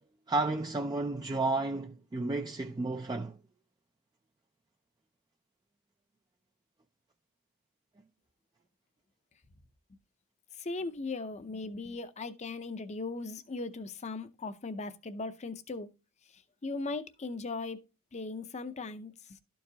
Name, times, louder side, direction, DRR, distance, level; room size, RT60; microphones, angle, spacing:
voice 1, 0.3-3.4, right 2 dB, 20° right, 0.3 m, -32 dB
voice 2, 10.6-15.9 16.3-17.8 18.1-19.4, left 3 dB, 30° left, 0.6 m, -38 dB
12.5 x 4.7 x 2.8 m
head